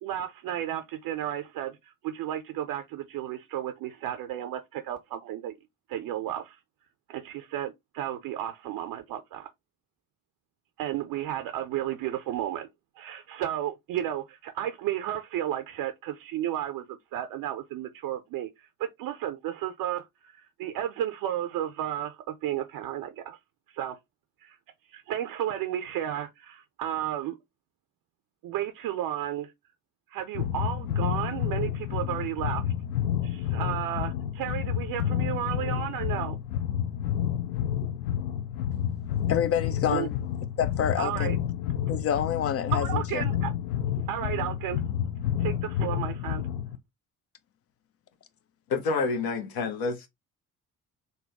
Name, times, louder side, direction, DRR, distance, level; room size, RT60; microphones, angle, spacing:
voice 1, 0.0-5.5 5.9-6.6 7.1-9.5 10.8-12.7 13.0-23.4 23.7-24.0 24.4-24.6 24.9-27.4 28.4-29.5 30.1-32.6 33.2-36.4 39.9-40.1 41.0-41.4 42.7-43.5 44.1-44.8 45.4-46.4, right 11 dB, 55° right, 0.6 m, -33 dB
sound 1, 30.3-46.8, left 10 dB, 80° left, 0.5 m, -30 dB
voice 2, 39.3-40.2 40.6-41.4 41.9-43.2, left 9 dB, 35° left, 0.6 m, -28 dB
voice 3, 48.7-50.1, left 4 dB, 55° left, 1.0 m, -28 dB
3.9 x 2.2 x 3.4 m
figure-of-eight pair, 45°, 44 cm